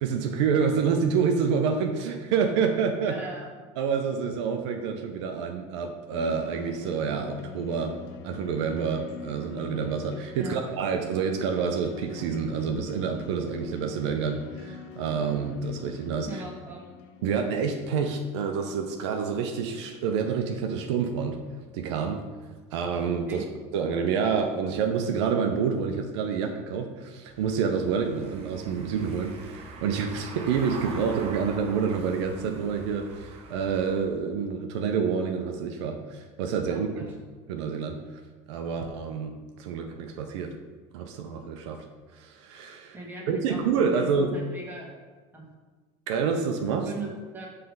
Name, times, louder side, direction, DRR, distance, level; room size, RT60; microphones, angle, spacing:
voice 1, 0.0-3.2 3.8-7.9 8.2-16.4 17.2-21.4 21.7-22.2 22.7-23.4 23.7-37.1 37.5-38.0 38.5-40.5 40.9-41.8 42.1-43.0 43.3-44.4 46.1-46.9, right 6 dB, 90° right, 4 dB, 0.5 m, -28 dB
voice 2, 3.0-3.4 10.3-10.6 16.3-16.8 23.3-23.4 31.3-31.4 36.7-37.0 42.9-44.9 45.3-45.4 46.8-47.5, right 3 dB, 15° right, -2 dB, 1.5 m, -39 dB
sound 1, 6.1-17.3, left 7 dB, 70° left, 0.5 m, -43 dB
Car passing by / Engine, 27.3-34.0, right 3 dB, 50° right, 1.0 m, -43 dB
5.7 x 3.3 x 5.3 m, 1.4 s
supercardioid pair, 125°, 14 cm